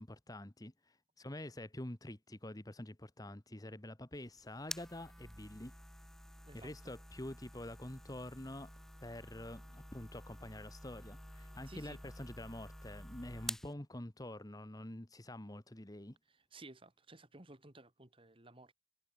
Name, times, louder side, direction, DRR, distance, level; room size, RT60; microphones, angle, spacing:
voice 1, 0.0-5.7 6.5-8.7 9.0-16.2, left 1 dB, 20° left, 1.5 m, -47 dB
sound 1, 4.1-13.7, equal, ahead, 1.3 m, -50 dB
voice 2, 6.4-6.9 11.7-12.0 16.3-18.7, right 2 dB, 30° right, 3.1 m, -56 dB
head